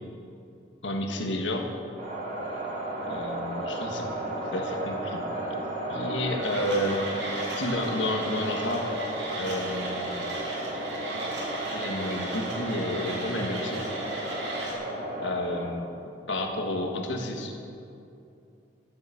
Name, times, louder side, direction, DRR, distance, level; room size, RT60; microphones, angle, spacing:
voice 1, 0.8-1.7 3.0-4.1 4.5-5.2 5.9-7.0 7.5-9.0 9.4-10.3 11.7-13.9 15.2-15.9 16.3-17.6, left 1 dB, 85° left, 3 dB, 1.5 m, -31 dB
sound 1, 2.0-15.7, right 1 dB, 40° right, 2.3 m, -33 dB
Mechanisms, 6.4-14.7, right 2 dB, 70° right, 2.7 m, -38 dB
12.5 x 8.0 x 7.3 m, 2.6 s
head